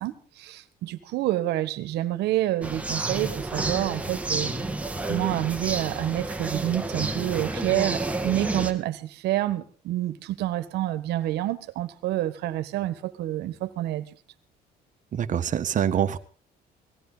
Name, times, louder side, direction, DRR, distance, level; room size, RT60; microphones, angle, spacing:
voice 1, 0.0-4.5 5.0-14.1, right 14 dB, 80° right, 13 dB, 1.5 m, -28 dB
sound 1, 2.6-8.7, right 2 dB, 10° right, 1.8 m, -30 dB
voice 2, 15.1-16.2, right 9 dB, 50° right, 10 dB, 1.4 m, -25 dB
18.5 x 15.5 x 4.0 m, 0.39 s
cardioid pair, 110°, 17 cm